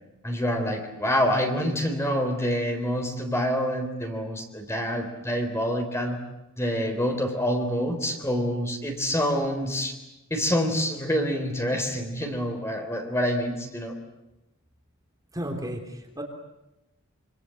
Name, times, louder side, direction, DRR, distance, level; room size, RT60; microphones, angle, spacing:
voice 1, 0.2-6.2 6.6-9.9 10.3-13.9, equal, 15° left, 4 dB, 3.8 m, -27 dB
voice 2, 15.3-16.2, equal, 15° right, 2 dB, 3.3 m, -33 dB
26.5 x 26.0 x 7.8 m, 0.96 s
head